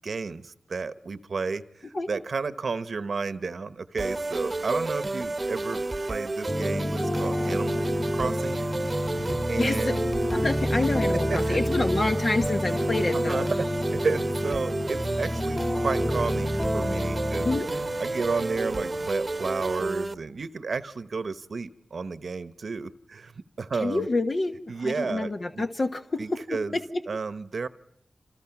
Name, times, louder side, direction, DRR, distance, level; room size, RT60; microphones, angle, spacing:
voice 1, 0.0-7.9 8.1-9.1 9.5-10.0 10.7-10.9 11.3-11.6 13.1-13.5 13.9-17.5 18.0-23.3 23.6-24.1 24.7-25.7 26.2-26.8 27.1-27.7, right 4 dB, 80° right, 12 dB, 1.0 m, -32 dB
sound 1, 4.0-20.1, right 2 dB, 40° right, 0.9 m, -31 dB
sound 2, 6.5-17.6, left 1 dB, 20° left, 2.1 m, -29 dB
sound 3, 7.0-19.1, left 2 dB, 85° left, 4.3 m, -45 dB
voice 2, 10.3-13.5 17.4-17.7 23.7-26.2 26.7-26.8, left 2 dB, 55° left, 4 dB, 1.2 m, -27 dB
28.0 x 27.5 x 6.0 m, 0.82 s
wide cardioid pair, 60°, 0 cm